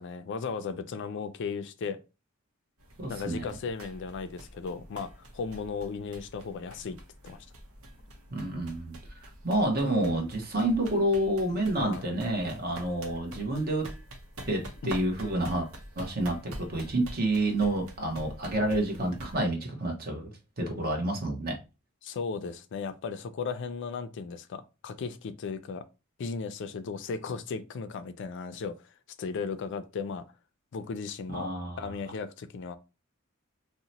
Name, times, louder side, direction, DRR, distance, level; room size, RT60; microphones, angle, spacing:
voice 1, 0.0-2.0 3.1-7.0 7.2-7.5 11.8-12.0 14.8-14.9 22.0-25.9 26.2-28.8 29.2-30.2 30.7-31.5 31.8-32.8, left 5 dB, 60° left, 0.4 m, -36 dB
sound 1, 2.8-19.4, right 1 dB, 85° right, 0.8 m, -46 dB
voice 2, 3.0-3.5 8.3-13.9 14.5-15.7 16.0-21.6 31.3-31.9, right 1 dB, 50° right, 0.9 m, -29 dB
2.8 x 2.1 x 3.9 m
head